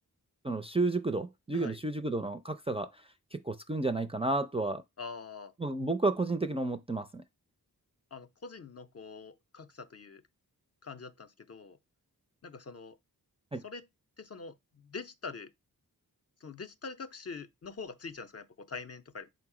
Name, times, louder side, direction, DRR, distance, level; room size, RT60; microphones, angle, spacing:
voice 1, 0.4-3.0 3.3-4.8 5.6-7.2 13.5-13.6, right 2 dB, 15° right, 0.3 m, -31 dB
voice 2, 5.0-5.5 8.1-10.2 10.8-11.8 12.4-13.0 13.6-13.9 14.2-15.5 16.4-19.3, left 4 dB, 40° left, 0.5 m, -44 dB
5.4 x 2.0 x 4.7 m
wide cardioid pair, 50°, 38 cm